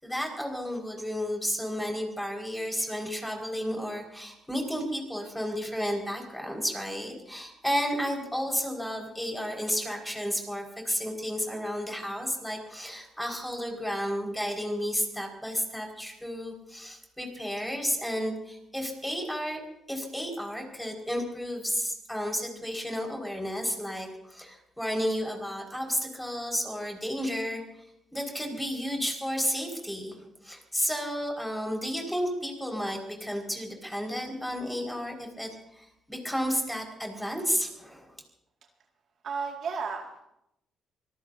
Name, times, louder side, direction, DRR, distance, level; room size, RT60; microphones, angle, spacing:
voice 1, 0.0-19.6 19.9-38.2, equal, 5° left, 1 dB, 5.4 m, -32 dB
voice 2, 39.2-40.3, right 5 dB, 60° right, 1 dB, 2.2 m, -33 dB
25.5 x 19.5 x 2.8 m, 0.82 s
cardioid pair, 90°, 0 cm